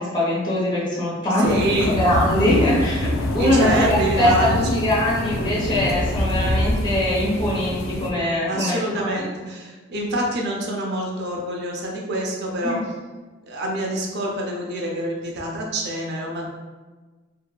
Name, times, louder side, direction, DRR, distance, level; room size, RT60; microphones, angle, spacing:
voice 1, 0.0-1.6 1.9-9.3 12.6-12.8, left 1 dB, 20° left, -7 dB, 0.8 m, -22 dB
sound 1, 1.4-8.1, left 1 dB, 85° left, 0.3 m, -25 dB
voice 2, 1.4-2.0 3.4-4.6 8.5-12.8 13.4-16.5, right 1 dB, 55° right, 0 dB, 0.5 m, -26 dB
2.6 x 2.2 x 2.3 m, 1.3 s
head